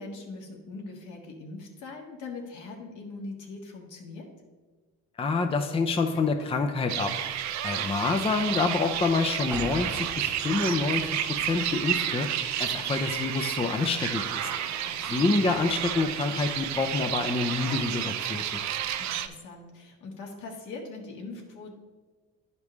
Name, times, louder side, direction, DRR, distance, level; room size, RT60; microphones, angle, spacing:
voice 1, 0.0-4.3 14.8-15.1 19.0-21.7, left 3 dB, 70° left, 1 dB, 1.6 m, -41 dB
voice 2, 5.2-7.1 7.6-12.3 12.6-14.5 15.1-18.6, left 4 dB, 20° left, 6 dB, 0.5 m, -27 dB
sound 1, 6.1-6.5 6.8-7.3 8.2-8.9 10.0-10.1 10.7-11.2 11.9-12.0 12.7-13.6 14.4-15.1 16.3-16.6 17.5-18.0 19.1-19.2, left 4 dB, 85° left, 1.4 m, -49 dB
sound 2, 6.9-19.3, right 10 dB, 60° right, 0.6 m, -31 dB
sound 3, 9.5-13.3 13.6-13.7, right 1 dB, 5° right, 1.0 m, -42 dB
10.5 x 5.2 x 3.2 m, 1.3 s
supercardioid pair, 85°, 32 cm